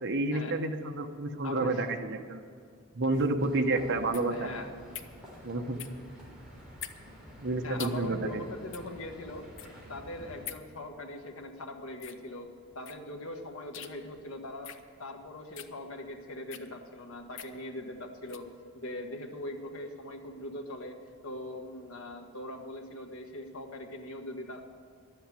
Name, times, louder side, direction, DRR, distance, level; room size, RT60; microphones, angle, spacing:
voice 1, 0.0-2.4 2.9-4.5 5.4-5.8 7.4-8.4, right 2 dB, 60° right, 5 dB, 1.0 m, -30 dB
voice 2, 1.4-1.8 4.3-4.7 7.6-9.5 9.9-14.7 15.0-18.5 18.7-21.0 21.2-24.6, left 1 dB, 80° left, 3 dB, 1.4 m, -41 dB
sound 1, 3.1-18.5, left 10 dB, 60° left, 0.7 m, -48 dB
sound 2, 3.4-10.5, equal, 5° right, 3.4 m, -50 dB
12.0 x 7.9 x 9.1 m, 2.2 s
head